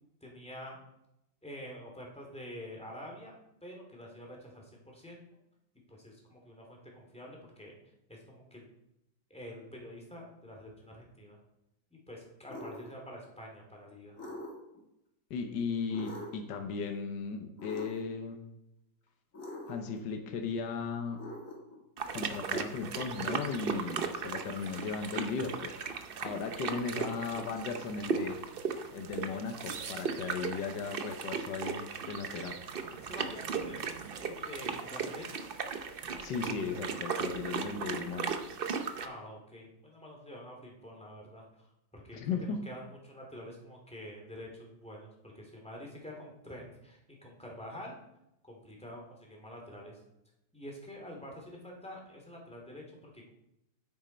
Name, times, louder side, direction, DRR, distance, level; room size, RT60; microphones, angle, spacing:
voice 1, 0.2-0.8 1.4-3.3 3.6-5.2 5.9-7.8 8.1-8.7 9.3-11.4 11.9-14.2 33.0-35.4 39.0-42.4 42.7-47.9 48.4-50.0 50.5-53.3, equal, 5° left, -1 dB, 2.3 m, -47 dB
sound 1, 12.5-12.9 14.2-14.8 15.9-16.5 17.6-18.2 19.3-20.0 21.1-21.8, left 1 dB, 45° left, 2.2 m, -44 dB
voice 2, 15.3-18.4 19.7-21.2 22.1-25.9 26.2-28.4 28.9-32.6 36.2-38.3 42.1-42.6, left 5 dB, 75° left, 5 dB, 1.6 m, -36 dB
sound 2, 22.0-39.1, right 5 dB, 75° right, 0.5 m, -37 dB
9.0 x 8.7 x 4.4 m, 0.86 s
omnidirectional pair, 2.0 m